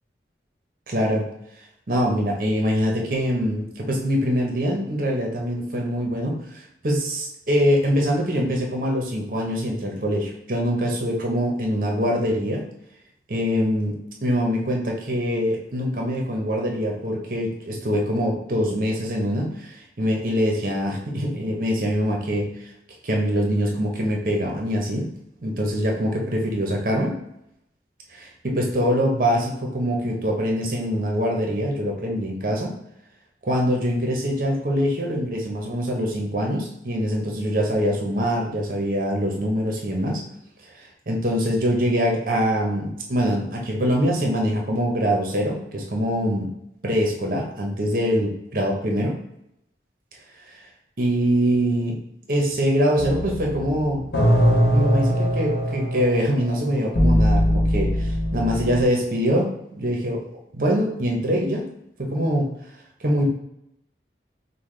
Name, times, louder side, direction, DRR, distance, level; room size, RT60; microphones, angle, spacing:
voice 1, 0.9-1.2 1.9-12.6 13.3-22.5 23.0-25.1 25.4-27.2 28.1-32.7 33.4-40.2 41.1-46.5 46.8-49.2 51.0-52.0 52.3-54.1 54.7-60.2 60.5-61.7 62.0-62.5 63.0-63.2, equal, 50° right, 0 dB, 0.8 m, -24 dB
sound 1, 53.0-58.8, equal, 75° left, 1.1 m, -21 dB
5.5 x 2.2 x 3.2 m, 0.79 s
head